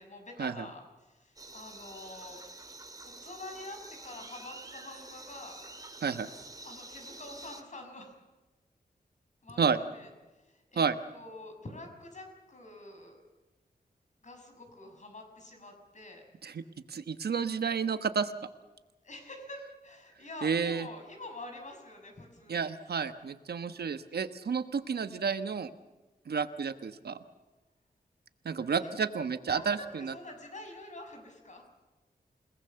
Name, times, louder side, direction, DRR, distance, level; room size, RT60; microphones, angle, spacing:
voice 1, 0.0-2.4 3.0-5.6 6.6-8.2 9.4-10.9 11.1-13.2 14.2-16.2 19.0-22.8 28.8-28.9 29.5-31.6, left 2 dB, 50° left, 4 dB, 6.2 m, -47 dB
sound 1, 1.4-7.6, right 2 dB, 20° right, 2.1 m, -48 dB
voice 2, 16.9-18.3 20.4-20.9 22.5-25.7 26.3-27.2 28.4-30.1, right 6 dB, 80° right, 10 dB, 1.2 m, -31 dB
28.5 x 19.0 x 6.9 m, 1.1 s
wide cardioid pair, 110°, 16 cm